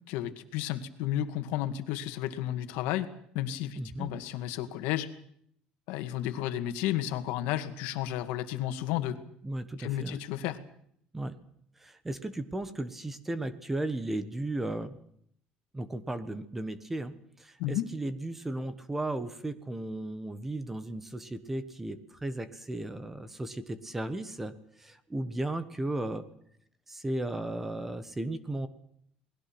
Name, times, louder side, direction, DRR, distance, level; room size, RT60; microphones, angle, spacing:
voice 1, 0.1-3.1 3.3-5.1 5.9-9.2 9.8-10.6 17.6-17.9, left 12 dB, 80° left, 8 dB, 2.1 m, -32 dB
voice 2, 3.8-4.1 9.4-10.2 11.1-11.3 11.8-14.9 15.7-26.2 26.9-28.7, right 1 dB, 10° right, 12 dB, 1.3 m, -35 dB
28.5 x 20.5 x 6.1 m, 0.68 s
cardioid pair, 175°, 3 cm